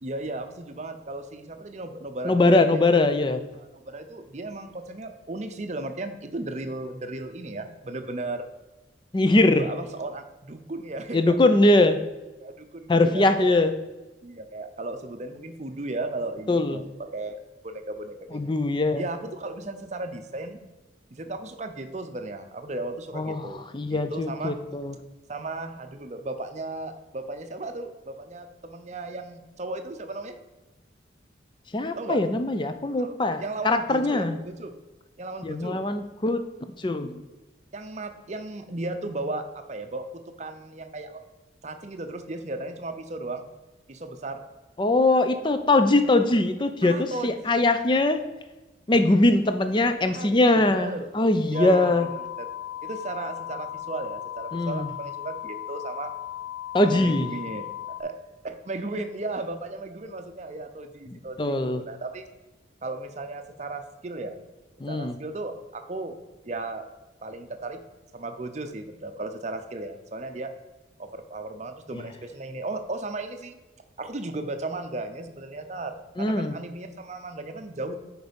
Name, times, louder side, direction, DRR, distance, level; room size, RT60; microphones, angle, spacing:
voice 1, 0.0-2.9 3.6-8.5 9.3-11.4 12.4-13.7 14.2-17.4 17.6-18.5 19.0-20.6 21.1-24.6 25.3-30.4 31.9-32.2 33.0-33.1 33.4-34.7 35.2-35.8 37.7-40.1 40.4-41.2 41.6-43.5 43.9-44.4 46.8-47.7 50.1-51.1 51.4-52.3 52.8-56.1 56.8-58.1 58.4-62.3 62.8-64.4 64.9-66.2 66.4-66.8 67.2-67.8 68.1-70.5 71.0-73.6 74.0-77.9, right 2 dB, 35° right, 7 dB, 0.6 m, -35 dB
voice 2, 2.2-3.4 9.1-9.6 11.1-12.0 12.9-13.7 16.5-16.8 18.3-19.0 23.1-24.9 31.7-34.4 35.4-36.4 36.8-37.2 44.8-48.2 48.9-52.1 54.5-54.9 56.7-57.3 61.1-61.8 64.8-65.2 71.9-72.0 76.2-76.5, left 2 dB, 25° left, 9 dB, 0.5 m, -22 dB
sound 1, 51.5-58.0, left 12 dB, 85° left, 0.4 m, -37 dB
6.5 x 4.7 x 5.2 m, 1.1 s
head